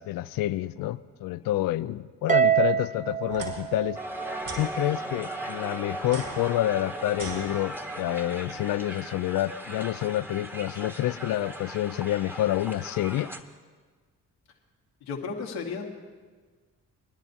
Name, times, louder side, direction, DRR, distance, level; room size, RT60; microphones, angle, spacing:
voice 1, 0.0-4.0 4.6-13.3, left 14 dB, 65° left, 15 dB, 0.5 m, -28 dB
Harp, 2.3-4.8, right 9 dB, 20° right, 0.5 m, -26 dB
sound 1, 3.3-3.5 4.4-4.7 6.0-8.0, right 3 dB, 60° right, 3.5 m, -40 dB
Crowd, 3.9-13.4, right 1 dB, 5° right, 1.0 m, -38 dB
voice 2, 15.0-15.9, left 5 dB, 90° left, 1 dB, 1.4 m, -34 dB
22.0 x 10.5 x 2.6 m, 1.5 s
supercardioid pair, 50°, 36 cm